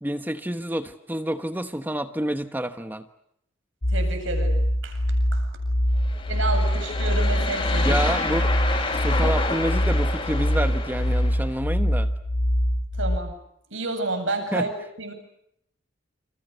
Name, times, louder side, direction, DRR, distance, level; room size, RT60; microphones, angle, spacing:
voice 1, 0.0-3.0 7.8-8.5 8.9-12.1 14.5-14.7, right 1 dB, 10° right, 9 dB, 1.2 m, -28 dB
sound 1, 3.8-13.2, equal, 85° left, 4.3 m, -24 dB
voice 2, 3.9-5.0 5.3-5.5 6.3-7.9 13.0-13.3 13.7-14.7 15.0-15.1, right 2 dB, 70° right, 6 dB, 8.0 m, -30 dB
sound 2, 6.0-11.5, left 3 dB, 25° left, 7.6 m, -30 dB
29.5 x 28.0 x 6.8 m, 0.75 s
head